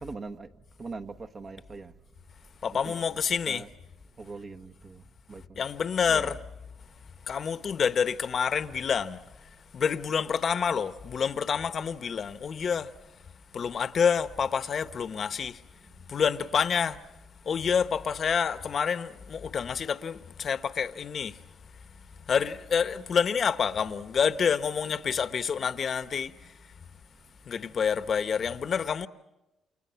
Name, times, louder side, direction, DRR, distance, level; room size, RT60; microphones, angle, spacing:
voice 1, 0.0-0.5 0.8-1.9 2.8-3.0 3.5-3.7 4.2-5.6 6.1-6.3 16.0-16.1 26.8-26.9, right 3 dB, 40° right, 1.3 m, -42 dB
voice 2, 2.6-3.6 5.6-6.4 7.3-9.2 9.7-12.9 13.5-15.6 16.1-17.0 17.5-21.3 22.3-26.3 27.5-29.1, left 6 dB, 50° left, 1.1 m, -28 dB
29.5 x 28.0 x 5.8 m
cardioid pair, 90°, 0 cm